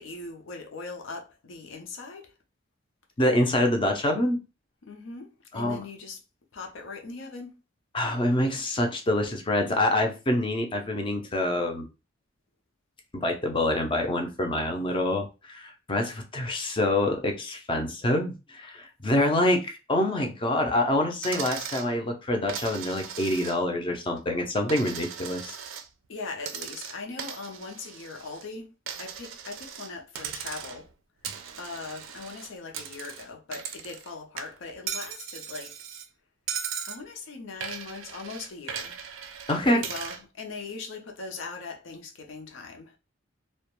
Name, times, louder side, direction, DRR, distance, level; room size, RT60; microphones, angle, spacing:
voice 1, 0.0-2.3 4.8-6.2 6.5-7.5 26.1-28.7 29.0-30.9 31.6-35.8 36.9-39.0 39.6-42.9, left 4 dB, 80° left, 0.6 m, -40 dB
voice 2, 3.2-4.4 5.5-5.8 7.9-11.9 13.1-25.6 39.5-39.8, left 1 dB, 25° left, 0.5 m, -26 dB
Coin (dropping), 21.2-21.9 22.5-23.8 24.2-25.9 26.4-28.5 28.9-29.9 30.2-30.9 31.2-34.1 34.4-36.1 36.5-37.0 37.6-40.2, right 7 dB, 90° right, 0.4 m, -38 dB
2.3 x 2.1 x 2.9 m
head